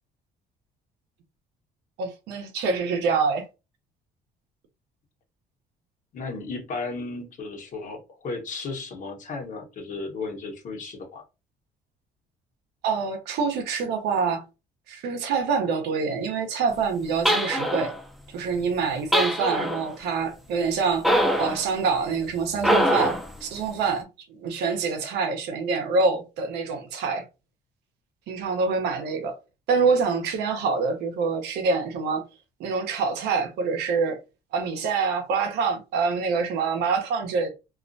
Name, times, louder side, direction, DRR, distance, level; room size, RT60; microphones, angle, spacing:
voice 1, 2.0-3.4 12.8-14.4 14.9-17.9 18.3-21.1 21.4-27.2 28.3-29.4 29.7-32.2 32.6-34.2 34.5-37.5, right 5 dB, 80° right, 0.7 m, -26 dB
voice 2, 6.1-11.2, left 3 dB, 50° left, 1.0 m, -34 dB
sound 1, 17.3-18.0 19.1-19.9 21.0-21.6 22.6-23.3, equal, ahead, 0.4 m, -23 dB
2.4 x 2.1 x 2.5 m
cardioid pair, 110°, 17 cm